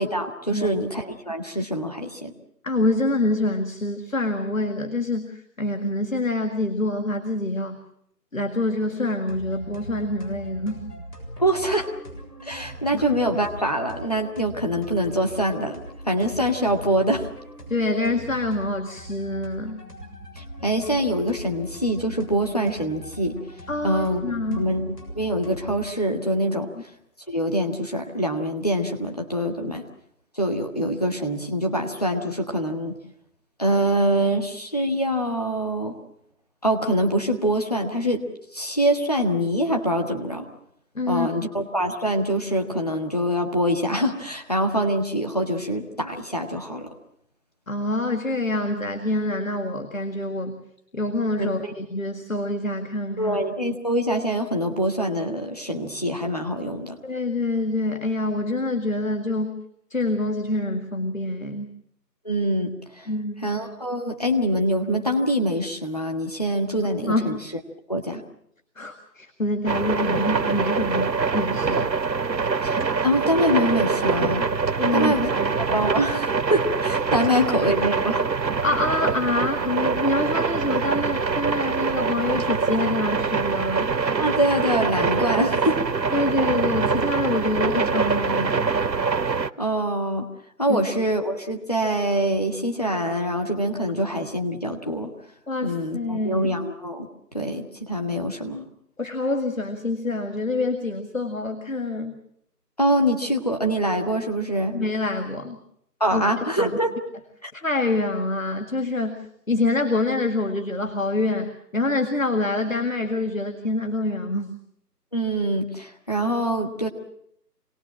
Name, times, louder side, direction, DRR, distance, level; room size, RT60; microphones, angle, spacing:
voice 1, 0.0-2.3 11.4-11.9 12.4-15.8 16.1-17.3 20.3-23.4 23.8-24.2 24.5-26.7 27.3-29.8 30.3-33.0 33.6-36.0 36.6-38.2 38.5-40.5 41.1-46.9 51.4-51.7 53.2-57.0 62.2-63.1 63.4-67.3 67.9-68.2 72.6-74.5 74.9-75.4 75.7-78.2 84.2-85.8 89.6-90.3 90.6-95.1 95.6-97.1 97.3-98.6 102.8-104.8 106.0-106.9 107.4-107.5 115.1-116.9, equal, 25° left, 2 dB, 1.6 m, -24 dB
voice 2, 2.6-7.8 8.3-10.8 12.9-13.0 17.7-19.8 23.7-24.7 41.0-41.3 47.7-50.6 50.9-53.4 57.0-59.6 59.9-61.7 63.1-63.4 67.1-67.4 68.8-71.9 74.8-75.8 77.6-77.7 78.6-83.9 86.1-88.7 90.7-90.8 95.5-96.5 99.0-102.1 104.7-105.6 106.1-106.2 106.6-106.7 107.5-114.5, left 2 dB, 50° left, 5 dB, 2.0 m, -26 dB
sound 1, 9.3-25.9, equal, 70° left, 7.4 m, -40 dB
sound 2, 69.7-89.5, right 5 dB, 90° right, 0.9 m, -24 dB
26.5 x 18.5 x 7.4 m, 0.70 s
figure-of-eight pair, 170°, 50 cm